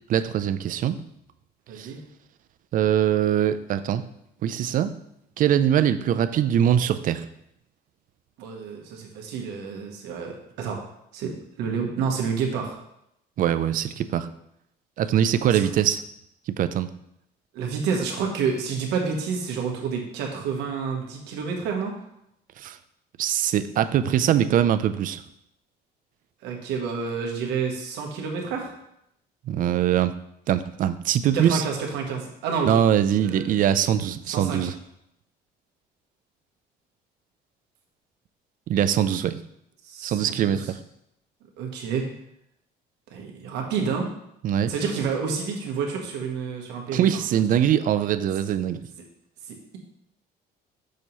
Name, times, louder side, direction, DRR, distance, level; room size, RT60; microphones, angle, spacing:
voice 1, 0.1-1.0 1.8-1.9 2.7-4.0 4.4-4.9 5.4-7.3 13.4-14.3 15.0-16.0 16.5-16.9 22.6-22.8 23.2-25.2 29.5-30.1 30.5-31.6 32.7-34.7 38.7-39.4 40.0-40.8 44.4-44.7 46.9-48.8, right 10 dB, 55° right, 12 dB, 0.4 m, -22 dB
voice 2, 1.7-2.0 8.4-10.8 11.1-12.8 15.5-15.7 17.5-21.9 26.4-28.7 31.3-32.8 33.2-33.5 34.3-34.7 39.8-40.7 41.6-42.1 43.1-44.1 44.7-47.1 49.5-49.8, right 5 dB, 90° right, 1 dB, 1.2 m, -29 dB
6.4 x 2.9 x 5.4 m, 0.78 s
cardioid pair, 110°, 17 cm